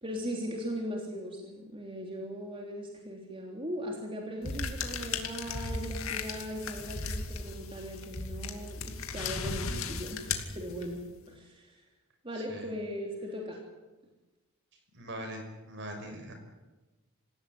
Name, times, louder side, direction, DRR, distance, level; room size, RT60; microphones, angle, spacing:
voice 1, 0.0-10.3 10.5-11.8 12.2-13.6, equal, 25° right, 0 dB, 3.4 m, -39 dB
sound 1, 4.4-11.1, left 4 dB, 70° left, 2.6 m, -36 dB
voice 2, 9.6-9.9 12.3-12.7 14.9-16.3, right 1 dB, 55° right, 5 dB, 6.2 m, -42 dB
26.5 x 16.5 x 9.7 m, 1.2 s
head